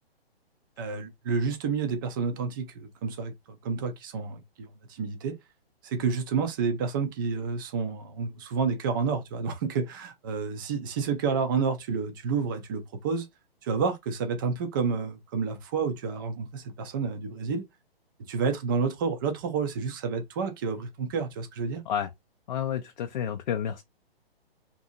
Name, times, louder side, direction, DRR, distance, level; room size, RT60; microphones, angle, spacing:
voice 1, 0.8-3.3 3.6-5.4 5.8-13.3 13.6-17.6 18.3-21.8, right 5 dB, 20° right, 0.4 m, -29 dB
voice 2, 22.5-23.8, left 9 dB, 45° left, 0.4 m, -30 dB
2.6 x 2.6 x 2.6 m
figure-of-eight pair, 130°, 31 cm